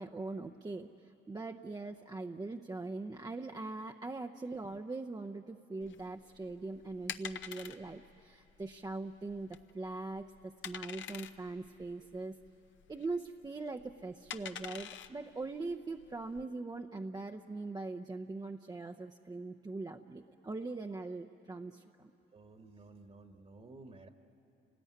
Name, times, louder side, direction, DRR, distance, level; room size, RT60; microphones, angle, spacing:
voice 1, 0.0-12.4 12.9-22.1, right 3 dB, 20° right, 4 dB, 0.7 m, -41 dB
sound 1, 5.8-16.4, left 9 dB, 70° left, 0.9 m, -47 dB
voice 2, 22.3-24.1, right 3 dB, 35° right, 5 dB, 1.4 m, -54 dB
29.5 x 19.5 x 9.4 m, 2.9 s
cardioid pair, 90°, 20 cm